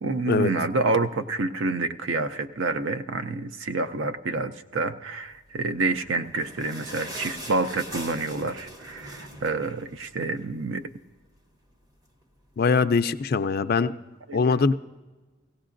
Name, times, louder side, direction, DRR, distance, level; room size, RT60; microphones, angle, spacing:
voice 1, 0.0-10.8 14.3-14.7, right 3 dB, 60° right, 9 dB, 0.5 m, -28 dB
sound 1, 5.9-10.6 11.0-11.1 11.4-11.5 12.2-12.3, equal, 20° right, 0.7 m, -41 dB
voice 2, 12.6-13.9 14.3-14.7, left 4 dB, 45° left, 11 dB, 0.3 m, -22 dB
17.5 x 16.5 x 2.6 m, 1.2 s
head